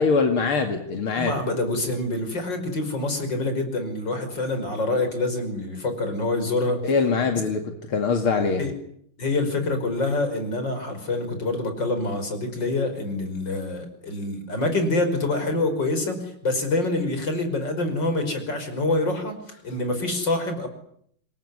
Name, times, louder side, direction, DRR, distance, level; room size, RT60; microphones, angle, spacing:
voice 1, 0.0-1.3 6.8-8.6, left 4 dB, 85° left, 5 dB, 3.1 m, -23 dB
voice 2, 1.1-6.9 8.6-8.7 9.2-20.7, left 2 dB, 55° left, 7 dB, 6.1 m, -26 dB
26.5 x 22.5 x 9.8 m, 0.69 s
omnidirectional pair, 2.3 m